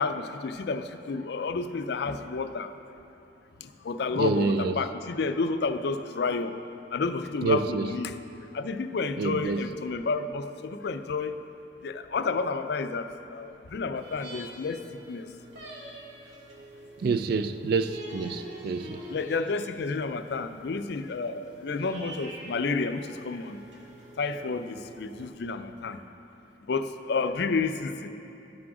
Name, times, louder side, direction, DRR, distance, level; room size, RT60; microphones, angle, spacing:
voice 1, 0.0-2.7 3.8-6.5 6.9-8.1 8.5-11.3 11.8-14.8 15.1-15.3 19.1-23.6 24.2-26.0 26.7-28.1, left 4 dB, 60° left, 0.4 m, -30 dB
voice 2, 4.1-4.8 7.4-7.9 9.2-9.7 17.0-19.1, right 4 dB, 55° right, 0.3 m, -27 dB
sound 1, 13.9-25.3, right 1 dB, 80° right, 1.5 m, -46 dB
12.0 x 6.1 x 4.8 m
head